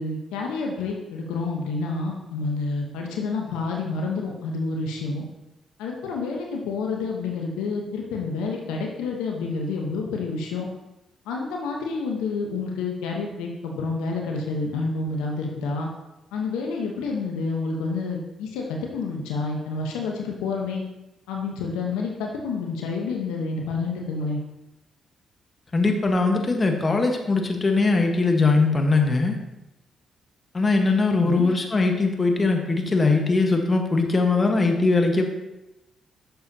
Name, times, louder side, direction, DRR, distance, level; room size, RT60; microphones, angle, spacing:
voice 1, 0.0-5.2 5.8-10.7 11.3-15.9 16.3-20.8 21.3-24.4 31.2-31.5, left 4 dB, 85° left, 0 dB, 1.0 m, -29 dB
voice 2, 25.7-29.4 30.5-35.3, left 3 dB, 35° left, 4 dB, 1.3 m, -21 dB
9.1 x 6.9 x 2.8 m, 0.95 s
supercardioid pair, 50°, 0 cm